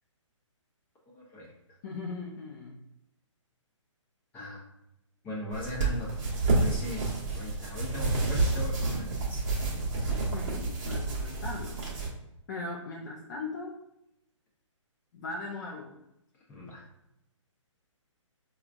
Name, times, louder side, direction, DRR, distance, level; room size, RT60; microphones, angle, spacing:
voice 1, 1.1-1.5 4.3-4.6 5.2-6.2 6.6-7.1 7.3-9.4 16.5-16.9, left 2 dB, 10° left, -4 dB, 0.8 m, -39 dB
voice 2, 1.8-2.8 10.1-11.8 12.5-13.9 15.1-16.0, left 3 dB, 35° left, -2 dB, 0.5 m, -39 dB
sound 1, 5.5-12.1, right 3 dB, 30° right, 1.0 m, -29 dB
4.5 x 2.4 x 2.5 m, 0.84 s
hypercardioid pair, 145°, 16 cm